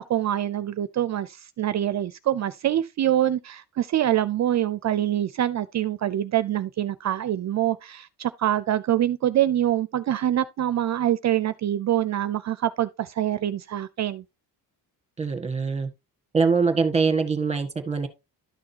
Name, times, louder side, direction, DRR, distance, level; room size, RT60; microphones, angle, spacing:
voice 1, 0.0-14.2, right 12 dB, 45° right, 0.5 m, -25 dB
voice 2, 15.2-15.9 16.3-18.1, right 5 dB, 15° right, 1.6 m, -23 dB
12.0 x 6.2 x 2.8 m
cardioid pair, 135°, 40 cm